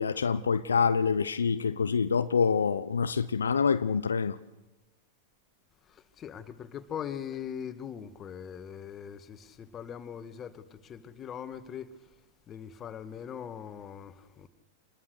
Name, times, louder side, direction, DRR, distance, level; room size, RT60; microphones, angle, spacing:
voice 1, 0.0-4.4, left 5 dB, 80° left, 0.7 m, -26 dB
voice 2, 5.8-12.0 12.5-14.5, left 8 dB, 30° left, 1.9 m, -41 dB
27.5 x 21.0 x 6.7 m
figure-of-eight pair, 95°, 0 cm